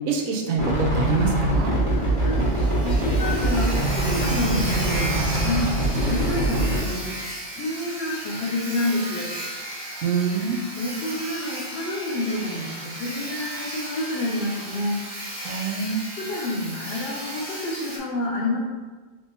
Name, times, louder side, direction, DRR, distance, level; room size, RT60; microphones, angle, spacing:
voice 1, 0.1-1.7 10.0-10.7 15.4-16.0, right 4 dB, 90° right, 1 dB, 1.0 m, -25 dB
sound 1, 0.6-6.8, right 1 dB, 30° right, 0.7 m, -23 dB
Sawing, 1.1-1.2 1.5-1.6 2.0-2.1 2.3-18.0, right 1 dB, 50° right, 1.0 m, -35 dB
voice 2, 1.9-5.7 6.0-7.1 7.5-9.4 10.5-15.0 15.4-15.6 15.9-18.6, left 2 dB, 60° left, -4 dB, 0.8 m, -29 dB
3.3 x 2.7 x 2.8 m, 1.3 s
omnidirectional pair, 1.4 m